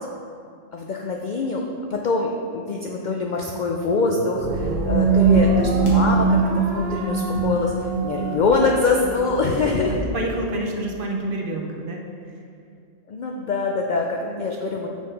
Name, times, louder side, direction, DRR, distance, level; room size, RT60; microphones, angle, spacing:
voice 1, 0.7-1.6 1.9-10.0 13.1-14.9, left 3 dB, 65° left, 1 dB, 0.4 m, -24 dB
sound 1, 3.9-10.4, right 3 dB, 80° right, 1.0 m, -33 dB
sound 2, 4.4-10.0, right 4 dB, 90° left, 1.7 m, -22 dB
voice 2, 9.9-12.4 14.2-14.5, right 1 dB, 55° right, 1 dB, 0.7 m, -29 dB
6.0 x 4.4 x 5.0 m, 2.4 s
omnidirectional pair, 1.3 m